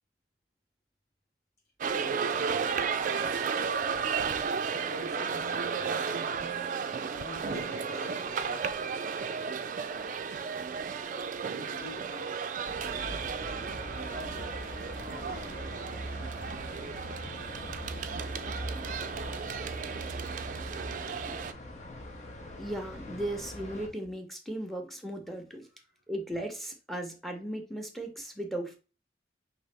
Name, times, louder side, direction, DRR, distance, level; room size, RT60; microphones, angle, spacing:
sound 1, 1.8-21.5, right 6 dB, 50° right, 0.3 m, -34 dB
voice 1, 1.9-3.7 4.8-5.9 7.1-8.8 9.4-10.2 11.4-12.7 13.4-15.6 25.9-26.0, left 2 dB, 60° left, 1.4 m, -48 dB
sound 2, 12.7-23.9, equal, 40° left, 0.8 m, -41 dB
voice 2, 22.6-25.6 26.1-28.8, right 1 dB, ahead, 0.8 m, -36 dB
5.4 x 2.9 x 3.3 m
head